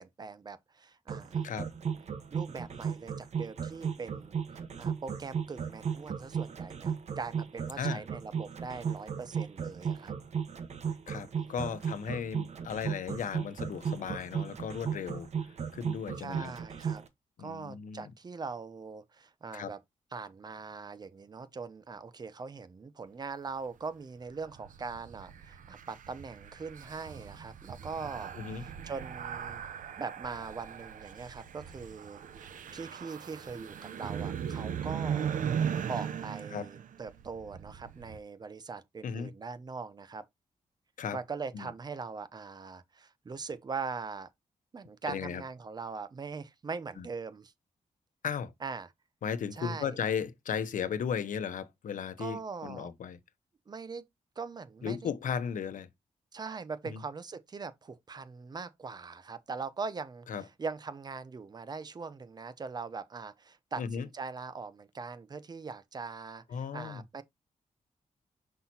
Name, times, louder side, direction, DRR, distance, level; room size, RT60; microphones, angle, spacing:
voice 1, 0.0-1.4 2.3-4.4 4.8-10.1 11.4-11.5 16.2-17.0 17.4-19.8 20.1-29.6 30.0-35.3 35.9-40.3 41.1-44.3 44.7-47.5 48.6-48.9 49.6-50.0 52.2-52.9 53.7-54.0 54.4-55.1 56.3-60.3 60.6-66.4 66.7-67.2, right 4 dB, 30° right, 0.7 m, -41 dB
sound 1, 1.1-17.1, right 7 dB, 55° right, 1.1 m, -35 dB
voice 2, 11.1-16.5 17.4-18.1 19.5-19.7 28.3-28.6 36.5-36.7 39.0-39.3 41.0-41.2 41.5-41.7 45.1-45.4 47.0-47.1 48.2-48.5 49.2-53.2 54.8-55.9 56.8-57.0 60.3-60.5 63.8-64.1 66.5-67.0, left 7 dB, 80° left, 1.0 m, -36 dB
sound 2, 24.3-38.2, right 8 dB, 85° right, 0.8 m, -38 dB
6.0 x 5.6 x 2.8 m
wide cardioid pair, 150°, 13 cm